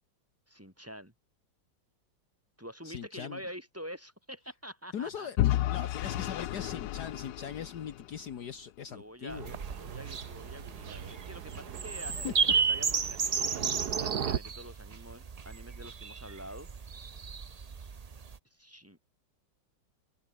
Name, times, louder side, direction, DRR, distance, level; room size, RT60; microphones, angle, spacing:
voice 1, 0.5-1.1 2.6-5.7 8.9-16.7 18.5-19.0, equal, 5° right, 7.5 m, -47 dB
voice 2, 2.8-3.4 4.9-5.4 5.7-9.5 12.1-12.3, left 8 dB, 65° left, 1.8 m, -40 dB
Vehicle / Engine, 5.4-8.4, left 14 dB, 80° left, 1.4 m, -31 dB
Thunder, 9.3-14.4, right 8 dB, 65° right, 1.7 m, -39 dB
sound 1, 9.4-18.4, right 5 dB, 45° right, 0.5 m, -33 dB
open air
omnidirectional pair, 1.9 m